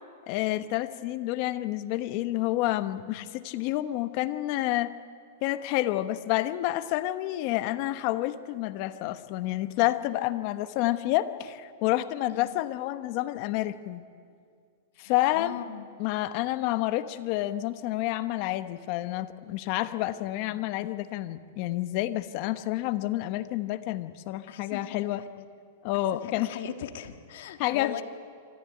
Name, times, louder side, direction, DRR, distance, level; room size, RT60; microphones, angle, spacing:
voice 1, 0.3-4.9 5.4-14.0 15.0-15.5 16.0-25.2 25.8-26.5 27.6-28.0, left 15 dB, 45° left, 11 dB, 1.0 m, -29 dB
voice 2, 12.3-12.6 15.0-15.9 24.5-25.4 26.1-28.0, left 9 dB, 65° left, 7 dB, 1.7 m, -39 dB
25.5 x 14.0 x 9.8 m, 2.2 s
supercardioid pair, 150°, 0 cm